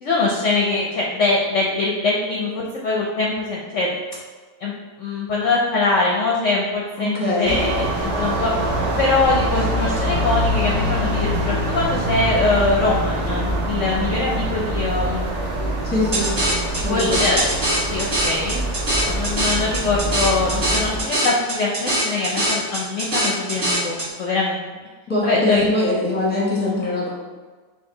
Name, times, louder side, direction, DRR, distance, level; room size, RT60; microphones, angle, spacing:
voice 1, 0.0-3.9 4.6-4.7 5.0-8.5 9.0-15.3 16.9-17.5 17.9-18.6 19.0-24.7 25.2-25.7, left 3 dB, 65° left, -3 dB, 0.8 m, -22 dB
voice 2, 7.0-7.6 15.8-16.3 16.8-17.2 25.1-27.1, left 2 dB, 10° left, -6 dB, 1.0 m, -22 dB
sound 1, 7.4-21.0, right 1 dB, 60° right, 0.9 m, -24 dB
sound 2, 16.1-24.1, right 1 dB, 40° right, 1.5 m, -23 dB
4.5 x 2.8 x 3.8 m, 1.4 s
omnidirectional pair, 1.6 m